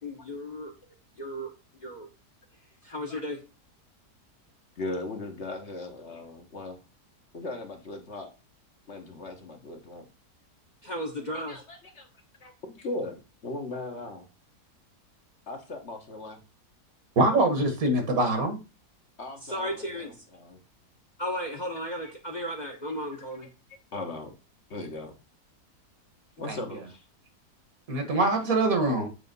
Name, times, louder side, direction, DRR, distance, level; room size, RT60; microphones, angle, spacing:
voice 1, 0.0-0.7 1.2-1.5 1.8-2.1 2.8-3.4 10.8-11.6 19.5-20.1 21.2-23.5, equal, 30° left, 3 dB, 1.1 m, -34 dB
voice 2, 4.8-6.8 7.3-8.3 8.9-10.0 11.5-12.1 12.4-13.2 13.4-14.3 15.5-16.4 19.2-20.6 22.0-22.4 22.8-22.9 23.7-24.3 24.7-25.1 26.4-27.1 28.3-28.4, left 2 dB, 45° left, 3 dB, 1.4 m, -38 dB
voice 3, 17.2-18.6 26.5-26.6 27.9-29.1, right 2 dB, 60° right, 5 dB, 1.9 m, -24 dB
8.0 x 3.5 x 5.3 m, 0.30 s
omnidirectional pair, 1.7 m